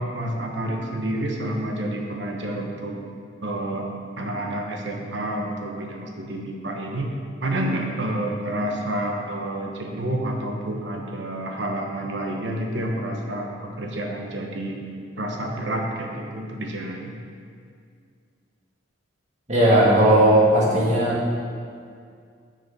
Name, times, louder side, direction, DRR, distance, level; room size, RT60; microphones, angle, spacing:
voice 1, 0.0-3.0 3.4-3.9 4.2-7.1 7.4-14.8 15.2-17.1, right 1 dB, 75° right, 1 dB, 1.1 m, -29 dB
voice 2, 19.5-21.2, right 1 dB, 40° right, -5 dB, 1.9 m, -17 dB
6.9 x 6.3 x 5.5 m, 2.2 s
head